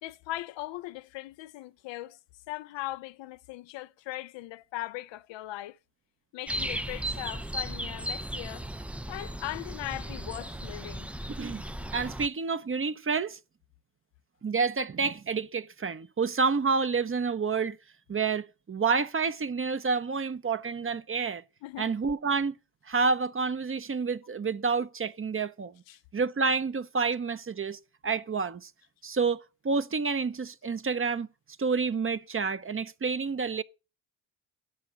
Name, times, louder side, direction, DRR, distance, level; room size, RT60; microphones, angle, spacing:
voice 1, 0.0-2.2 2.5-5.8 6.3-8.7 9.1-11.1 21.6-21.9 25.9-26.0, left 16 dB, 65° left, 0.7 m, -39 dB
sound 1, 6.5-12.3, right 1 dB, 5° right, 0.5 m, -36 dB
voice 2, 11.9-13.4 14.4-17.8 18.1-21.4 21.8-22.6 22.9-25.7 26.1-28.7 29.0-31.3 31.6-33.6, right 5 dB, 25° right, 0.9 m, -29 dB
10.5 x 7.1 x 6.5 m
hypercardioid pair, 50°, 49 cm